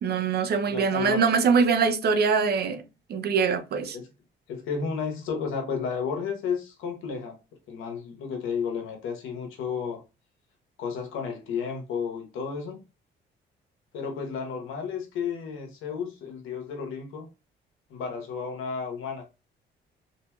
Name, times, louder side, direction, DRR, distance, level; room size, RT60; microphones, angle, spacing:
voice 1, 0.0-2.8 3.1-4.0, right 5 dB, 55° right, 0.5 m, -23 dB
voice 2, 0.7-1.2 3.9-4.0 4.5-7.4 7.7-10.0 10.8-12.8 13.9-17.3 17.9-19.2, left 6 dB, 90° left, 0.9 m, -32 dB
2.8 x 2.6 x 2.2 m
cardioid pair, 90°, 20 cm